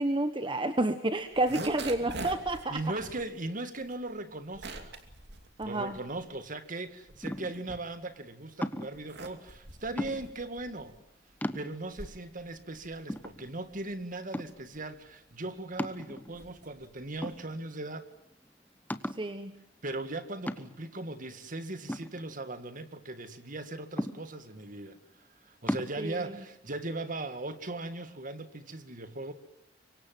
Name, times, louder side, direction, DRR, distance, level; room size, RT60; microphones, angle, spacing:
voice 1, 0.0-2.8 5.6-6.0 19.2-19.5 26.0-26.2, right 2 dB, 25° right, 9 dB, 1.2 m, -29 dB
sound 1, 1.2-6.5 6.9-8.3 8.8-17.6, right 2 dB, 60° right, 2.8 m, -46 dB
voice 2, 2.7-4.9 5.6-11.0 11.5-18.1 19.8-29.3, right 2 dB, 45° right, 10 dB, 2.1 m, -39 dB
sound 2, 7.2-7.7 8.6-9.0 10.0-10.5 11.0-11.1 11.4-12.0 12.6-12.7 13.1-13.8 14.3-14.7 15.8-16.5 17.2-17.9 18.2-18.3 18.9-19.3 20.5-20.9 21.9-22.8 24.0-24.6 25.7-25.9, equal, 10° left, 1.1 m, -36 dB
25.5 x 24.0 x 7.7 m, 0.74 s
head